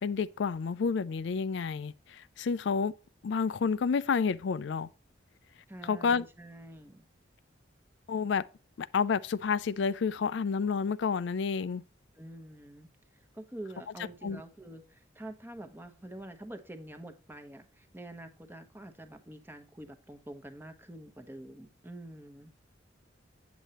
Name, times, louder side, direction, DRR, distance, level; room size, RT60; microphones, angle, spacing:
voice 1, 0.0-2.9 3.2-4.9 5.8-6.2 8.1-8.4 8.8-11.8 14.2-14.4, left 5 dB, 70° left, 0.4 m, -30 dB
voice 2, 5.7-7.1 12.1-22.5, right 1 dB, 10° right, 0.9 m, -47 dB
8.2 x 7.8 x 2.9 m
head